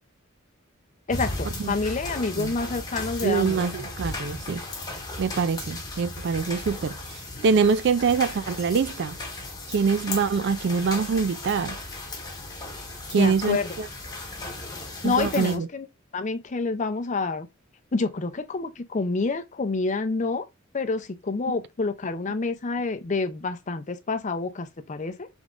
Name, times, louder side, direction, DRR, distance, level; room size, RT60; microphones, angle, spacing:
voice 1, 1.1-3.6 13.1-13.7 15.0-15.9 16.1-17.5 17.9-20.4 20.7-25.3, left 3 dB, 35° left, 0.5 m, -28 dB
sound 1, 1.1-15.6, left 2 dB, 20° left, 1.2 m, -36 dB
voice 2, 3.2-4.6 5.2-7.2 7.4-9.2 9.7-11.8 13.1-13.9 15.0-15.7 21.5-21.6, right 5 dB, 55° right, 0.4 m, -24 dB
5.3 x 3.5 x 2.5 m
head